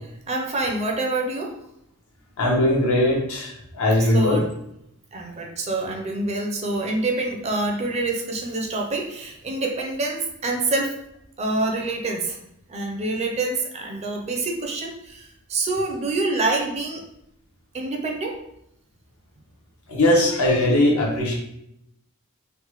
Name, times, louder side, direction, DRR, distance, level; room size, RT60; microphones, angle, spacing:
voice 1, 0.3-1.5 4.1-4.5 5.1-11.0 11.4-12.4 12.7-17.0 17.7-18.4, right 2 dB, 30° right, 1 dB, 0.4 m, -26 dB
voice 2, 2.4-4.4 19.9-21.3, left 1 dB, 80° left, -2 dB, 0.8 m, -20 dB
3.2 x 2.0 x 2.9 m, 0.79 s
head